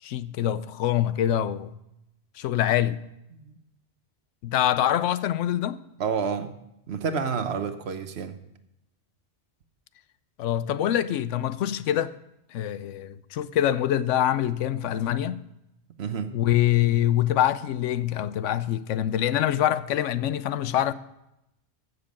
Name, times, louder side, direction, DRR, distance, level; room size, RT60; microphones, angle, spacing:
voice 1, 0.0-1.7 2.4-3.0 4.4-5.8 10.4-12.1 12.5-15.4 16.3-20.9, left 11 dB, 85° left, 0.9 m, -25 dB
voice 2, 6.0-6.5 6.9-8.4 16.0-16.3, right 6 dB, 65° right, 1.1 m, -29 dB
14.5 x 6.8 x 5.2 m
omnidirectional pair, 1.2 m